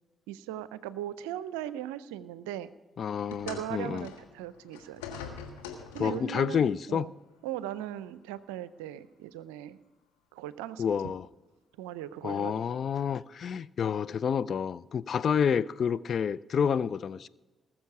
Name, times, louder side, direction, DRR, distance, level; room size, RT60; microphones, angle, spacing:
voice 1, 0.3-2.7 3.4-5.2 5.9-7.1 7.4-9.8 10.3-11.1 11.8-12.8, right 12 dB, 85° right, 0.5 m, -39 dB
voice 2, 3.0-4.1 6.0-7.1 10.8-11.3 12.2-17.3, left 7 dB, 60° left, 0.4 m, -29 dB
sound 1, 3.3-6.4 7.3-7.5 8.4-8.5, left 6 dB, 90° left, 1.4 m, -44 dB
19.5 x 7.3 x 4.7 m
hypercardioid pair, 40°, 0 cm